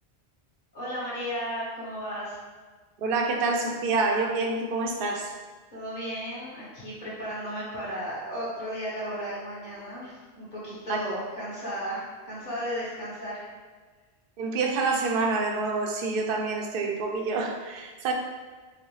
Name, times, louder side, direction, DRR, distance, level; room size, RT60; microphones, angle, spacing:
voice 1, 0.7-2.4 5.7-13.5, equal, 45° left, -9 dB, 1.5 m, -34 dB
voice 2, 3.0-5.3 10.9-11.0 14.4-18.1, right 3 dB, 60° right, 1 dB, 0.7 m, -27 dB
4.8 x 2.1 x 3.2 m, 1.4 s
omnidirectional pair, 1.1 m